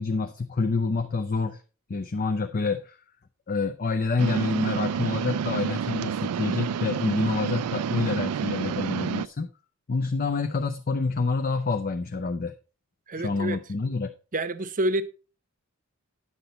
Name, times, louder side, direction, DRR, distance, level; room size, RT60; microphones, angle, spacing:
voice 1, 0.0-1.6 1.9-3.0 3.5-9.5 9.9-12.5 13.2-14.1, left 4 dB, 40° left, 0.5 m, -27 dB
sound 1, 4.2-9.3, right 7 dB, 85° right, 0.4 m, -29 dB
voice 2, 13.1-13.6 14.3-15.0, right 1 dB, 35° right, 0.7 m, -27 dB
9.7 x 6.8 x 4.1 m
head